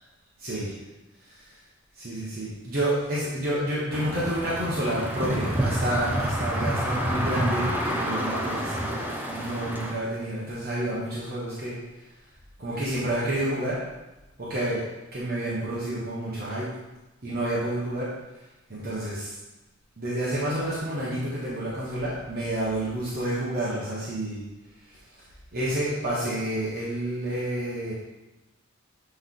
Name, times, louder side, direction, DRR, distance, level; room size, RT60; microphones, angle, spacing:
voice 1, 0.4-0.7 2.0-9.0 9.3-11.8 12.6-13.8 14.4-14.8 15.1-16.7 17.2-18.1 18.7-19.3 20.0-24.4 25.5-27.9, right 1 dB, 50° right, -8 dB, 1.2 m, -29 dB
sound 1, 3.9-9.9, equal, 10° right, 0.7 m, -28 dB
7.9 x 3.4 x 3.8 m, 1.0 s
head